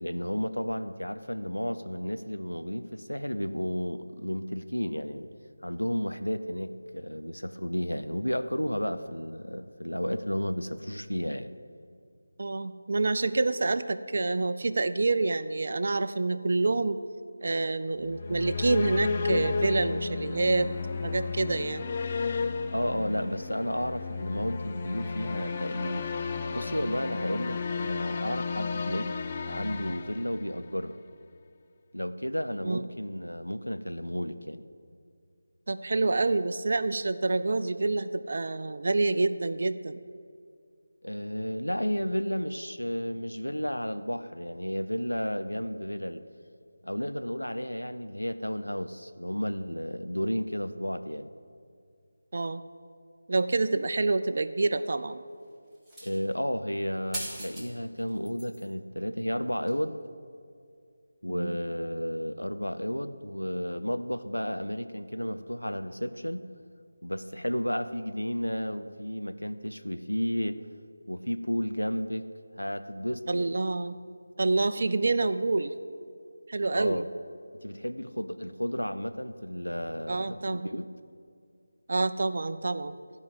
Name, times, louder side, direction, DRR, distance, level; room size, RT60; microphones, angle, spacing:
voice 1, 0.0-5.3 5.6-11.5 22.7-26.1 26.5-29.1 29.5-31.0 31.9-34.6 41.0-46.2 46.8-51.3 56.0-60.0 61.2-66.4 67.0-70.6 71.1-72.3 72.6-73.5 76.6-77.0 77.5-80.9, equal, 85° left, 10 dB, 0.6 m, -32 dB
voice 2, 12.4-17.0 17.4-20.7 21.0-21.9 32.6-32.8 35.7-40.0 52.3-52.6 53.3-55.2 61.3-61.6 73.3-73.9 74.4-75.7 76.5-77.1 80.1-80.7 81.9-82.9, right 3 dB, 45° right, 12 dB, 0.4 m, -27 dB
sound 1, 18.0-30.9, left 4 dB, 25° left, 0.4 m, -33 dB
sound 2, 55.8-56.3 57.1-57.7 58.0-58.7 59.7-59.8, right 1 dB, ahead, 1.3 m, -39 dB
13.0 x 5.3 x 8.0 m, 2.3 s
figure-of-eight pair, 160°, 0 cm